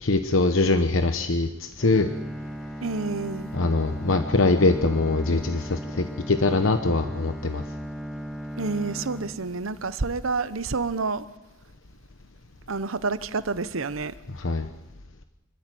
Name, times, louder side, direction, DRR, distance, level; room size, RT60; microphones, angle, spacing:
voice 1, 0.0-2.1 3.5-7.6 14.3-14.7, left 3 dB, 75° left, 1.0 m, -23 dB
Bowed string instrument, 1.8-10.0, equal, ahead, 1.6 m, -37 dB
voice 2, 2.8-3.5 8.6-11.3 12.7-14.1, right 4 dB, 90° right, 0.9 m, -28 dB
25.5 x 14.0 x 7.7 m
head